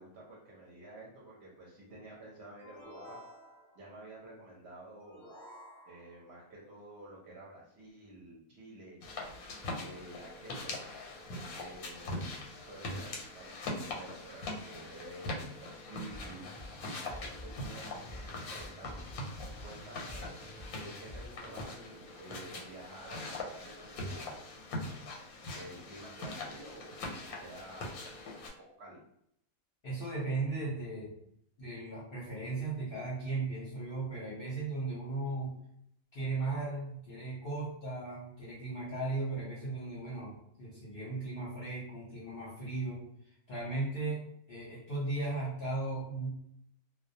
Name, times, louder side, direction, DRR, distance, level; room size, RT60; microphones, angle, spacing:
voice 1, 0.0-3.2 3.7-5.3 5.8-9.0 9.8-10.9 11.5-12.4 12.7-16.5 17.2-19.1 19.6-20.5 20.7-24.4 25.5-28.0 28.8-29.0, right 1 dB, 60° right, -4 dB, 0.8 m, -50 dB
sound 1, 2.6-3.9 5.0-6.3, equal, ahead, 0.8 m, -52 dB
sound 2, 9.0-28.5, left 2 dB, 90° left, 1.1 m, -42 dB
sound 3, 16.1-21.6, left 1 dB, 15° right, 0.3 m, -48 dB
voice 2, 29.8-31.2 31.6-35.5 36.1-43.0 43.5-44.2 44.5-46.4, right 3 dB, 55° left, -8 dB, 0.7 m, -36 dB
2.2 x 2.2 x 2.6 m, 0.72 s
omnidirectional pair, 1.5 m